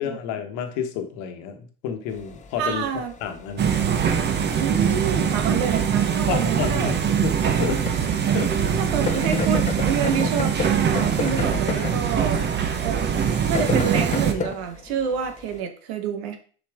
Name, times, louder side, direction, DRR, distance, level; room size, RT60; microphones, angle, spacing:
voice 1, 0.0-2.8 3.2-3.7 6.3-7.3 7.6-7.8 8.3-8.8, left 7 dB, 65° left, 6 dB, 1.3 m, -30 dB
sound 1, 2.1-15.6, left 6 dB, 25° left, 0.9 m, -34 dB
voice 2, 2.6-3.1 4.6-6.9 7.5-7.6 8.8-12.4 12.8-13.0 13.5-16.4, right 7 dB, 75° right, 6 dB, 1.3 m, -28 dB
sound 2, 3.6-14.3, right 7 dB, 35° right, 1.0 m, -22 dB
7.2 x 4.7 x 3.6 m, 0.41 s
supercardioid pair, 100°, 31 cm